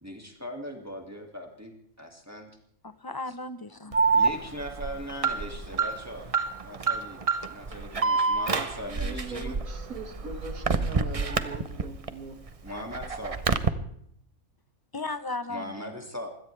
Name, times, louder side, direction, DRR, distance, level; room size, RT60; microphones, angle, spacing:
voice 1, 0.0-2.5 4.1-6.3 6.6-9.5 12.6-13.4 15.5-16.3, equal, 10° right, 2 dB, 2.3 m, -39 dB
voice 2, 2.8-4.0 14.9-15.9, left 3 dB, 20° left, 12 dB, 0.7 m, -35 dB
Alarm, 3.9-12.1 12.5-13.7, right 4 dB, 30° right, 0.7 m, -27 dB
voice 3, 8.8-12.4, right 3 dB, 85° right, 6 dB, 2.3 m, -40 dB
24.0 x 17.0 x 3.4 m, 0.70 s
omnidirectional pair, 1.4 m